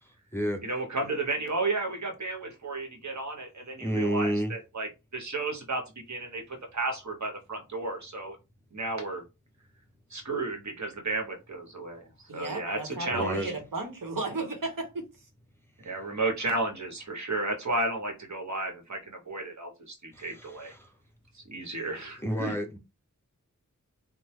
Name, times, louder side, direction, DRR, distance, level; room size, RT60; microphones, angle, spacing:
voice 1, 0.0-0.6 3.8-4.5 13.1-13.5 15.8-15.9 20.1-20.9 22.0-22.8, equal, 5° left, 0.6 m, -31 dB
voice 2, 0.6-8.4 8.7-9.2 10.1-13.5 15.8-20.7 21.3-22.5, right 2 dB, 60° right, 1.0 m, -33 dB
voice 3, 12.3-15.1, right 3 dB, 85° right, 0.9 m, -34 dB
3.2 x 2.0 x 3.1 m
wide cardioid pair, 50°, 32 cm